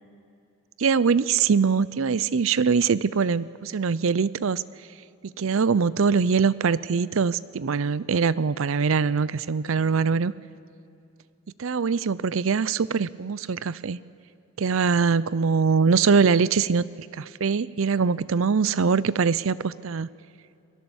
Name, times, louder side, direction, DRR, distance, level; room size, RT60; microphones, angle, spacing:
voice 1, 0.8-4.6 5.2-10.3 11.6-14.0 14.6-16.9 17.1-20.1, right 5 dB, 65° right, 18 dB, 0.5 m, -23 dB
27.5 x 20.0 x 7.2 m, 2.5 s
head